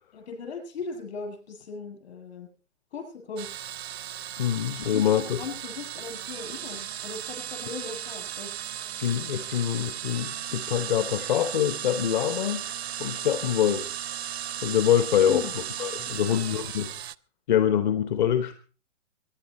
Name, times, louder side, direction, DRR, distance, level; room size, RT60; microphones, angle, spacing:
voice 1, 0.1-2.5 2.9-3.5 4.7-8.5 15.3-15.5 16.1-16.6, left 5 dB, 60° left, 3 dB, 7.6 m, -38 dB
sound 1, 3.4-17.2, right 11 dB, 55° right, 0.6 m, -36 dB
voice 2, 4.4-5.4 9.0-12.7 13.0-13.9 14.6-15.4 15.8-16.9 17.5-18.5, left 10 dB, 40° left, 10 dB, 1.0 m, -25 dB
23.0 x 10.5 x 4.3 m, 0.38 s
hypercardioid pair, 135°, 38 cm